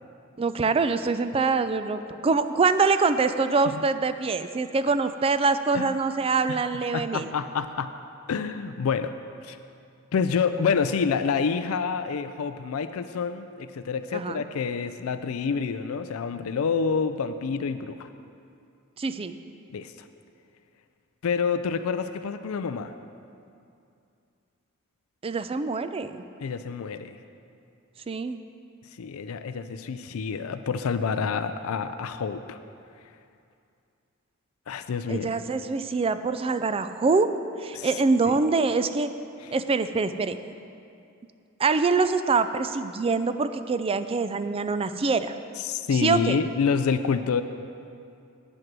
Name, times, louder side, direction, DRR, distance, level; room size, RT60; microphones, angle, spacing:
voice 1, 0.4-7.3 14.1-14.4 19.0-19.3 25.2-26.2 28.1-28.4 35.1-37.3 37.6-39.1 39.5-40.4 41.6-45.3 45.9-46.4, right 4 dB, 25° right, 11 dB, 0.4 m, -24 dB
voice 2, 6.9-7.9 8.3-9.2 9.4-9.6 10.1-18.1 19.7-20.1 21.2-22.9 26.4-27.2 29.0-32.6 34.7-35.3 37.7-37.9 38.3-38.4 45.6-47.4, left 5 dB, 90° left, 10 dB, 0.4 m, -28 dB
9.5 x 7.8 x 6.0 m, 2.5 s
head